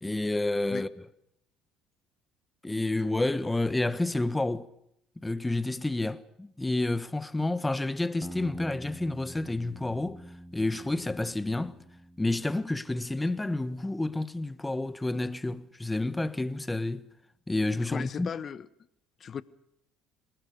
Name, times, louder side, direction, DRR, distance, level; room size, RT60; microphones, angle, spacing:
voice 1, 0.0-0.9 2.6-4.7 5.2-10.2 10.5-11.8 12.2-17.1 17.5-18.3, left 2 dB, 15° left, 1.2 m, -29 dB
sound 1, 8.2-12.9, right 1 dB, 5° right, 1.9 m, -46 dB
voice 2, 17.9-18.7 19.2-19.4, left 7 dB, 45° left, 1.1 m, -36 dB
26.5 x 20.0 x 6.7 m
hypercardioid pair, 65°, 0 cm